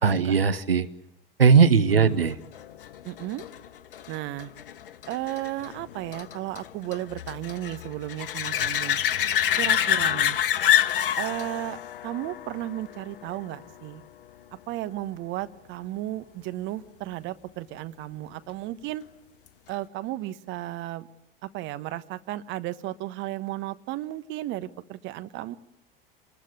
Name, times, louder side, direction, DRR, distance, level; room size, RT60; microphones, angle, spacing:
voice 1, 0.0-0.9 1.4-2.4, right 6 dB, 80° right, 13 dB, 0.9 m, -19 dB
voice 2, 1.9-2.3 3.0-3.4 4.1-4.5 5.1-9.0 9.6-10.4 11.2-14.0 14.7-19.0 19.7-21.1 21.4-25.6, right 15 dB, 40° right, 12 dB, 1.3 m, -34 dB
sound 1, 2.5-13.8 19.5-19.6, left 10 dB, 65° left, 1.0 m, -28 dB
26.5 x 20.5 x 8.2 m, 0.83 s
figure-of-eight pair, 80°, 29 cm